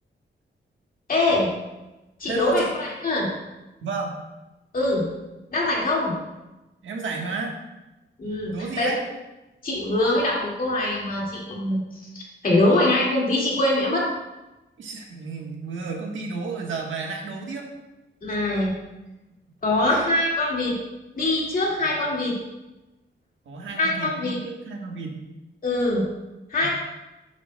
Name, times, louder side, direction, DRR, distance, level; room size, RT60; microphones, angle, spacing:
voice 1, 1.1-1.5 2.2-3.3 4.7-5.1 5.5-6.2 8.2-8.9 9.6-14.1 18.2-18.7 19.6-20.8 21.1-22.4 23.8-24.4 25.6-26.1 26.5-26.7, left 2 dB, 45° left, -4 dB, 2.1 m, -23 dB
voice 2, 2.3-2.7 3.8-4.2 6.8-7.6 8.5-9.0 14.8-17.7 19.7-20.1 21.8-21.9 23.4-25.2 26.6-26.7, right 4 dB, 85° right, 1 dB, 1.3 m, -32 dB
9.6 x 8.7 x 2.2 m, 1.0 s
wide cardioid pair, 180°, 20 cm